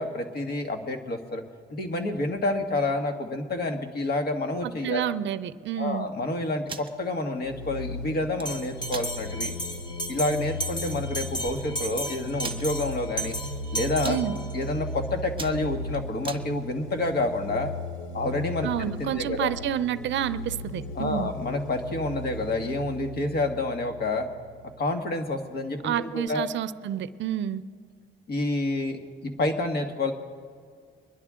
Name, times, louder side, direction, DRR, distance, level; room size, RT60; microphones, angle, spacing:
voice 1, 0.0-1.4 1.7-5.1 5.8-9.5 10.1-13.3 13.7-14.2 14.5-17.7 18.1-19.5 21.0-24.3 24.8-26.5 28.3-30.1, left 2 dB, 50° left, 5 dB, 1.7 m, -29 dB
voice 2, 4.6-6.1 14.0-14.4 18.6-21.3 25.8-27.6, right 10 dB, 65° right, 15 dB, 0.6 m, -29 dB
sound 1, 6.5-6.9 8.1-8.5 8.9-9.1 9.6-9.7 10.1-10.3 11.1-11.2 11.4-11.5 12.4-12.7 13.3-13.6 13.9-14.2 14.8-15.0 15.3-16.4, right 4 dB, 25° right, 1.0 m, -38 dB
sound 2, 7.4-24.8, left 2 dB, 90° left, 0.8 m, -37 dB
Bell, 8.4-14.7, right 1 dB, 20° left, 1.4 m, -35 dB
23.5 x 11.0 x 3.7 m, 2.1 s
cardioid pair, 90°, 20 cm